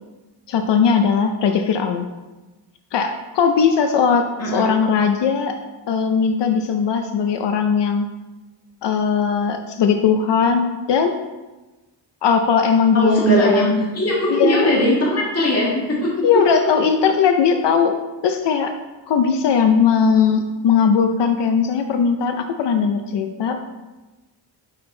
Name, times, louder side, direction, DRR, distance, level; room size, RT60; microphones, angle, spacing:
voice 1, 0.5-2.1 2.9-5.5 5.9-8.1 8.8-11.1 12.2-13.8 14.3-14.7 16.2-17.9 18.2-18.7 19.1-23.6, left 6 dB, 70° left, 6 dB, 0.6 m, -19 dB
voice 2, 4.4-4.7 12.9-16.6, equal, 35° left, -5 dB, 1.8 m, -19 dB
6.5 x 5.7 x 3.8 m, 1.1 s
cardioid pair, 110°, 44 cm